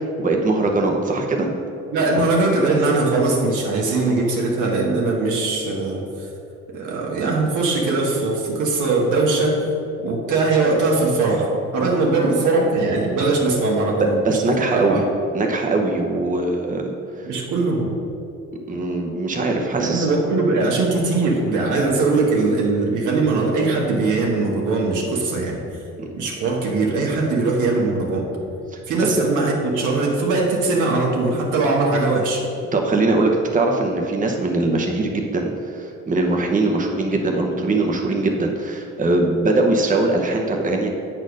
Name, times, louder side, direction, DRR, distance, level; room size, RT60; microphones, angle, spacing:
voice 1, 0.2-1.5 14.2-15.0 15.3-17.3 18.7-20.1 26.0-26.1 29.1-29.2 32.7-40.9, right 2 dB, 25° right, 2 dB, 0.9 m, -21 dB
voice 2, 1.9-6.3 6.7-9.7 10.0-14.2 14.4-15.0 17.2-17.9 19.8-25.6 26.1-28.3 28.9-32.5, right 3 dB, 85° right, -1 dB, 1.6 m, -20 dB
8.0 x 4.4 x 6.3 m, 2.6 s
cardioid pair, 90°, 30 cm